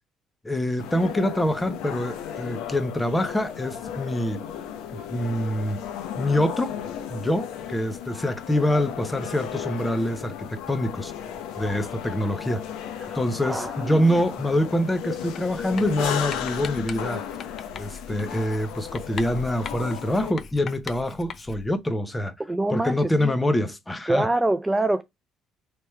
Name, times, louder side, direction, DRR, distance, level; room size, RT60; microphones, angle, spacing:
voice 1, 0.4-4.4 5.1-5.8 6.1-6.7 7.1-11.1 11.6-12.7 13.1-17.2 17.7-22.3 22.7-24.3, left 1 dB, 15° left, 0.8 m, -25 dB
sound 1, 0.8-20.3, left 9 dB, 85° left, 0.9 m, -35 dB
voice 2, 13.0-14.0 22.4-23.4 24.1-25.0, right 2 dB, 15° right, 0.4 m, -25 dB
Writing, 15.4-21.8, left 6 dB, 50° left, 0.6 m, -40 dB
3.4 x 3.1 x 4.3 m
supercardioid pair, 80°, 0 cm